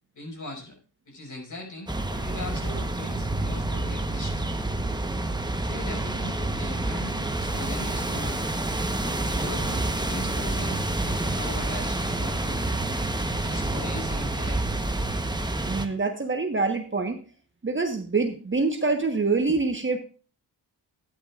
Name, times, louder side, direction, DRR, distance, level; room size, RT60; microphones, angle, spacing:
voice 1, 0.1-0.8 1.0-4.4 5.5-8.4 9.3-12.6 13.4-14.9, left 1 dB, 45° left, 0 dB, 6.1 m, -39 dB
sound 1, 1.9-15.9, right 2 dB, 10° right, 1.1 m, -28 dB
voice 2, 15.6-17.2 17.6-20.0, right 3 dB, 25° right, 5 dB, 1.3 m, -25 dB
13.0 x 10.0 x 2.5 m, 0.36 s
cardioid pair, 60°, 44 cm